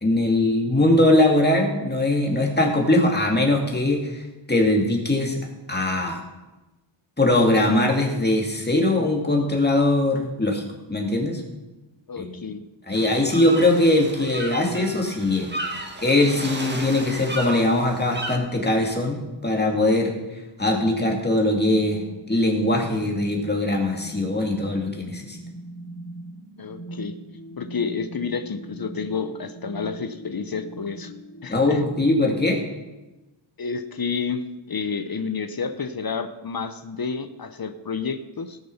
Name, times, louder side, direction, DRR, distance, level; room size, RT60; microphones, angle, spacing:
voice 1, 0.0-4.2 4.5-5.4 5.7-6.2 7.2-10.6 10.9-11.4 12.2-12.3 12.9-20.2 20.6-25.4 31.5-32.6, left 1 dB, 20° left, 1 dB, 2.5 m, -21 dB
voice 2, 12.1-12.6 26.6-27.1 27.6-31.1 31.4-31.8 33.6-38.6, left 5 dB, 50° left, 10 dB, 0.8 m, -30 dB
sound 1, 12.9-18.4, right 1 dB, 20° right, 1.8 m, -34 dB
sound 2, 20.6-32.4, right 1 dB, 75° left, 3.5 m, -41 dB
18.0 x 6.7 x 5.6 m, 1.1 s
wide cardioid pair, 90°, 47 cm